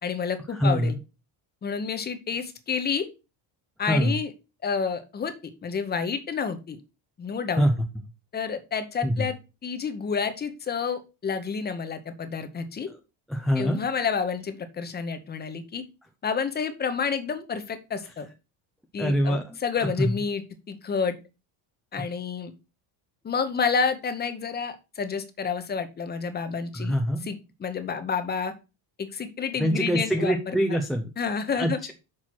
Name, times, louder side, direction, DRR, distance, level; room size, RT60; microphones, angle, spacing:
voice 1, 0.0-0.9 1.6-3.1 3.8-4.3 4.6-6.8 7.2-7.7 8.3-12.9 13.6-15.8 16.2-18.3 18.9-20.4 20.7-21.2 21.9-22.5 23.2-27.0 27.2-28.5 29.0-30.6 31.2-31.8, left 6 dB, 20° left, 9 dB, 0.8 m, -29 dB
voice 2, 0.6-1.0 3.9-4.1 7.6-7.7 9.0-9.3 13.3-13.8 19.0-19.6 20.0-20.1 26.7-27.2 29.6-31.1 31.6-31.9, equal, ahead, 3 dB, 0.3 m, -24 dB
6.2 x 4.4 x 5.9 m, 0.29 s
cardioid pair, 175°, 46 cm